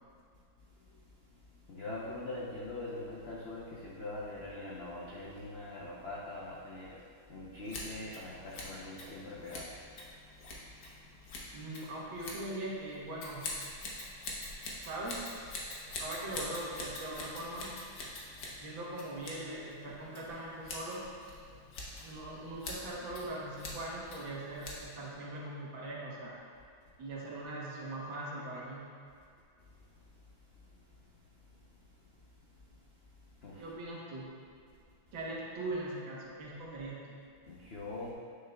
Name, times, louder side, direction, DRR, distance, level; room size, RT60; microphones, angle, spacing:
voice 1, 1.7-7.0 7.3-9.7 33.4-33.7 37.5-38.1, left 2 dB, 80° left, -5 dB, 0.5 m, -42 dB
Scissors, 7.6-25.1, left 2 dB, 60° left, 1.5 m, -45 dB
voice 2, 11.5-13.6 14.9-15.5 16.0-17.7 18.6-21.0 22.0-26.4 27.0-28.9 33.6-34.3 35.1-37.2, right 1 dB, 75° right, -5 dB, 2.0 m, -41 dB
9.2 x 6.5 x 2.3 m, 2.2 s
omnidirectional pair, 2.2 m